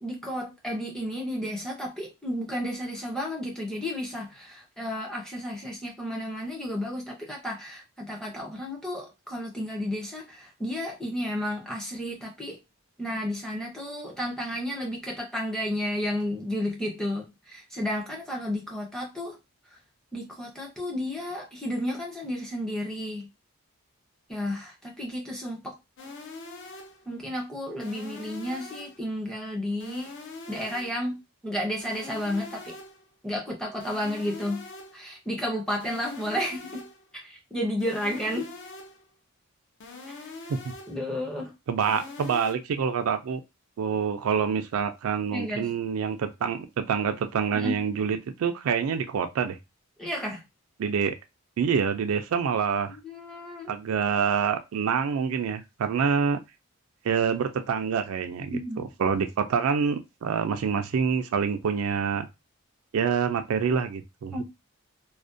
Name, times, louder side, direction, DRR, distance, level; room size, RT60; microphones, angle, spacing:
voice 1, 0.0-12.6 13.0-19.4 20.1-23.3 24.3-25.8 27.1-30.2 30.5-31.2 31.4-32.8 33.2-34.6 34.9-36.9 37.1-38.5 40.1-40.3 40.9-41.5 45.3-45.7 47.5-47.8 50.0-50.4 52.9-53.7 58.5-58.9 64.3-64.4, equal, 5° left, 0.5 m, -32 dB
sound 1, 26.0-27.1 27.8-29.1 29.8-31.1 31.8-33.1 33.8-35.1 35.8-37.1 37.8-39.1 39.8-41.1 41.8-42.5, left 3 dB, 55° left, 0.4 m, -43 dB
voice 2, 41.7-43.4 43.8-49.6 50.8-51.1 51.6-53.0 53.7-56.4 57.0-58.5 59.0-62.3 62.9-64.4, right 6 dB, 75° right, 0.3 m, -26 dB
2.4 x 2.1 x 2.5 m
head